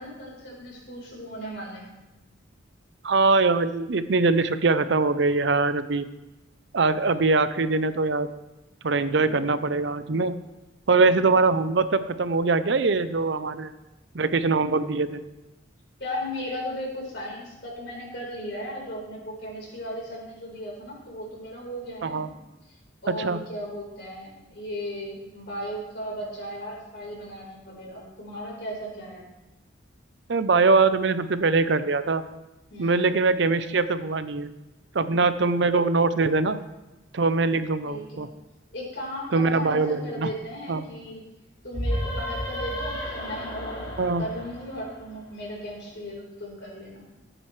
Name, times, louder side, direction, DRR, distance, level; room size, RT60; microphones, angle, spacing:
voice 1, 0.0-2.0 9.1-9.4 16.0-22.3 23.0-29.2 32.7-33.1 37.8-38.3 38.7-41.3 41.6-43.9 44.2-47.0, equal, 60° left, -3 dB, 4.3 m, -36 dB
voice 2, 3.0-6.0 6.7-8.3 8.8-10.3 10.9-13.7 14.1-15.2 22.0-22.3 23.2-23.4 30.3-32.2 32.8-34.5 34.9-36.6 37.1-38.3 39.3-40.3 40.7-40.8 44.0-44.2, right 3 dB, 65° right, 12 dB, 0.6 m, -22 dB
sound 1, 41.7-45.3, equal, 30° left, 4.6 m, -32 dB
17.5 x 8.9 x 3.3 m, 0.99 s
head